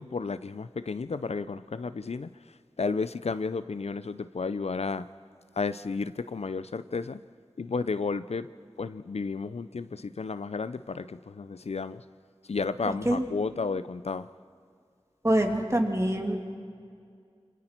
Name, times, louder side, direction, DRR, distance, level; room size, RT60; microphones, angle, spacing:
voice 1, 0.0-2.3 2.8-5.1 5.6-7.2 7.6-8.5 8.8-12.0 12.5-14.3, left 4 dB, 80° left, 0.5 m, -32 dB
voice 2, 15.2-16.4, right 1 dB, 30° right, 2.5 m, -25 dB
27.5 x 25.5 x 4.5 m
wide cardioid pair, 40°, 11 cm